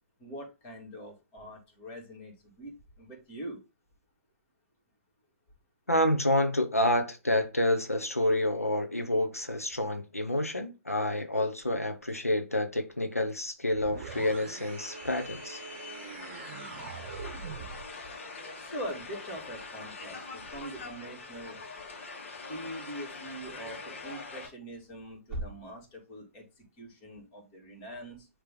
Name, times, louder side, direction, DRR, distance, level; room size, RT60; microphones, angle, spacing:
voice 1, 0.2-3.6 16.7-17.0 18.6-21.6 22.5-28.3, right 1 dB, 30° left, 2.8 m, -43 dB
voice 2, 5.9-15.6, left 1 dB, 90° left, 1.0 m, -28 dB
sound 1, 13.7-17.9, right 6 dB, 45° right, 0.9 m, -43 dB
sound 2, 14.1-24.5, left 4 dB, 55° left, 1.8 m, -44 dB
sound 3, 20.4-21.6 23.0-23.1 24.1-25.9, right 1 dB, 10° right, 1.4 m, -43 dB
9.3 x 3.3 x 3.8 m
figure-of-eight pair, 120°, 8 cm